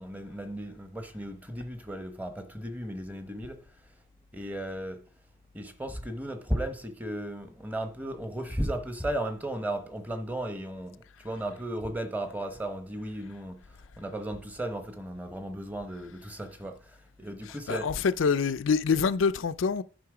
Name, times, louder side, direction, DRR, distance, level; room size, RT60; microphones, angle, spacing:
voice 1, 0.0-3.6 4.3-5.0 5.5-17.9, right 1 dB, 10° right, 1.0 m, -35 dB
voice 2, 17.4-19.8, left 5 dB, 85° left, 0.5 m, -26 dB
10.0 x 5.4 x 4.9 m
head